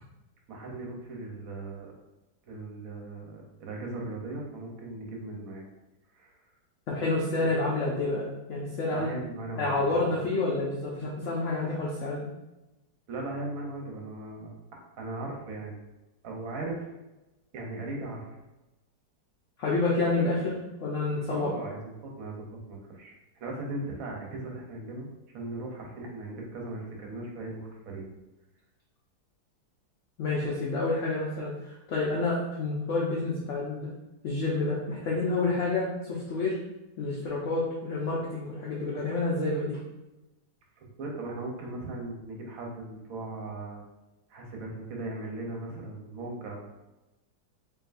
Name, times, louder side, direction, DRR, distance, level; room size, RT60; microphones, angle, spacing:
voice 1, 0.5-1.9 2.5-5.7 6.1-6.4 7.4-7.5 8.9-10.3 13.1-14.5 15.0-15.8 16.2-16.9 17.5-18.4 21.3-25.1 25.3-28.0 40.8-43.8 44.3-46.6, right 2 dB, 60° right, 0 dB, 1.1 m, -38 dB
voice 2, 6.9-9.1 9.6-12.3 19.6-21.5 30.2-33.9 34.2-36.6 37.0-39.8, left 2 dB, 60° left, -5 dB, 0.8 m, -29 dB
4.7 x 2.7 x 2.5 m, 1.0 s
omnidirectional pair, 1.8 m